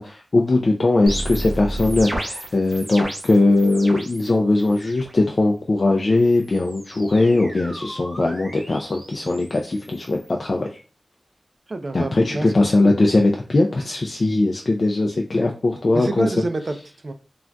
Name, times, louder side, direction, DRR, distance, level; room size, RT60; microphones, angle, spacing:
voice 1, 0.0-10.8 11.9-16.3, left 2 dB, 60° left, 1 dB, 0.3 m, -20 dB
sound 1, 1.1-4.3 4.6-5.1 6.2-10.3, right 1 dB, 40° right, 0.8 m, -33 dB
voice 2, 11.7-12.9 15.9-17.1, right 2 dB, 55° right, 7 dB, 0.4 m, -28 dB
3.7 x 2.3 x 2.2 m, 0.36 s
wide cardioid pair, 60°, 0 cm